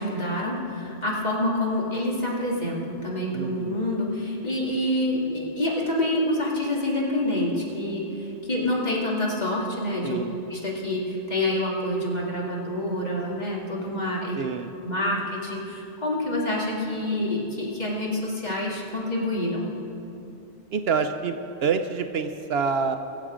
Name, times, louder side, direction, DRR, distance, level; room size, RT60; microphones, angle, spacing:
voice 1, 0.0-10.2 10.5-14.4 14.8-19.7, left 1 dB, 40° left, -3 dB, 2.3 m, -27 dB
voice 2, 3.3-3.8 10.0-10.3 14.4-14.7 20.7-21.4 21.6-23.0, right 5 dB, 65° right, 8 dB, 0.8 m, -26 dB
22.5 x 7.6 x 5.0 m, 2.8 s
omnidirectional pair, 1.2 m